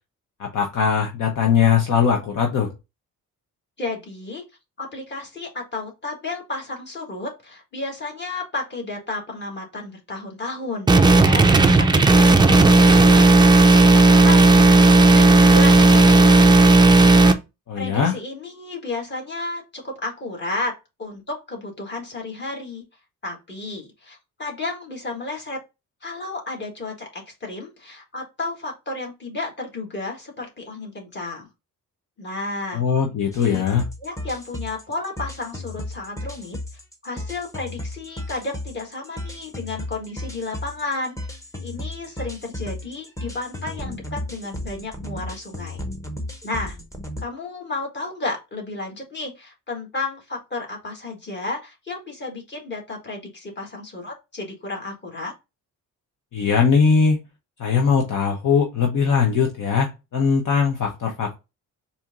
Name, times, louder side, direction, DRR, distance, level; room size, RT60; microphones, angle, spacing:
voice 1, 0.4-2.7 17.7-18.1 32.7-33.8 56.3-57.2 57.6-61.3, left 6 dB, 65° left, 2 dB, 1.0 m, -20 dB
voice 2, 3.8-4.4 4.8-13.4 13.9-17.1 17.8-20.7 21.0-22.8 23.2-25.6 26.0-31.5 32.2-32.8 33.4-33.6 34.0-36.6 37.0-41.2 41.6-45.8 46.4-46.8 47.2-55.3, left 2 dB, 30° left, 0 dB, 1.8 m, -32 dB
sound 1, 10.9-17.3, right 2 dB, 15° right, 0.4 m, -13 dB
sound 2, 33.3-47.2, left 1 dB, 10° left, 0.8 m, -34 dB
4.4 x 2.8 x 3.6 m, 0.25 s
cardioid pair, 135°, 34 cm